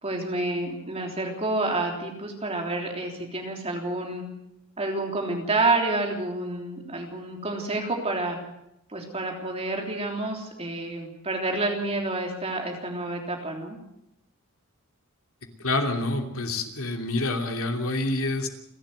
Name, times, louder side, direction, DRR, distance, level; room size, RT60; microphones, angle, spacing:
voice 1, 0.0-4.2 4.8-8.4 8.9-13.8, right 2 dB, 25° right, 2 dB, 3.4 m, -29 dB
voice 2, 15.6-18.5, left 2 dB, 70° left, 4 dB, 2.9 m, -27 dB
29.5 x 12.0 x 7.8 m, 0.84 s
head